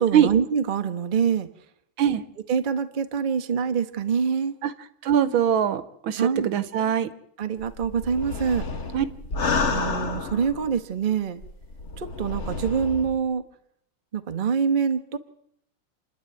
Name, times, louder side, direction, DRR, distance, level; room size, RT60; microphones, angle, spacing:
voice 1, 0.0-1.5 2.5-4.5 6.2-6.5 7.4-8.7 9.7-11.4 12.0-13.4 14.1-15.2, right 6 dB, 30° right, 9 dB, 1.0 m, -25 dB
voice 2, 5.0-7.1 8.9-9.1, right 9 dB, 70° right, 14 dB, 1.7 m, -22 dB
sound 1, 7.6-10.8 11.4-13.2, left 4 dB, 40° left, 1.4 m, -30 dB
28.0 x 10.5 x 9.0 m, 0.75 s
omnidirectional pair, 2.3 m